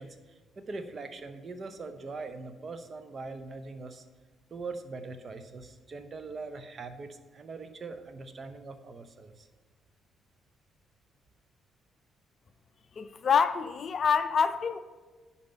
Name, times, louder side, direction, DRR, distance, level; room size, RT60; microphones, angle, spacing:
voice 1, 0.0-4.0 4.5-9.5, right 3 dB, 40° right, 0.8 m, -42 dB
voice 2, 13.0-14.8, left 6 dB, 45° left, 0.4 m, -26 dB
10.5 x 4.2 x 6.9 m
figure-of-eight pair, 40°, 0 cm